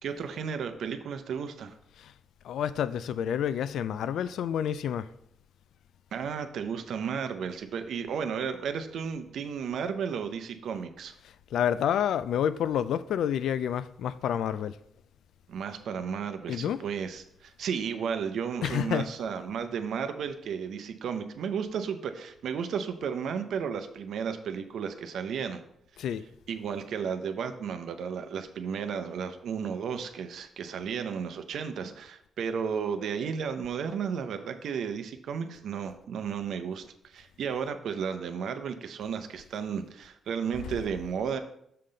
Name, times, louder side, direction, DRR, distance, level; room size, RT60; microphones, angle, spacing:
voice 1, 0.0-1.7 6.1-11.2 15.5-25.6 26.5-41.4, right 7 dB, 70° right, 0.6 m, -33 dB
voice 2, 2.4-5.1 11.2-14.8 16.5-16.8 18.6-19.1 26.0-26.2 40.6-40.8, left 9 dB, 75° left, 0.3 m, -29 dB
6.6 x 5.6 x 3.8 m
cardioid pair, 145°, 0 cm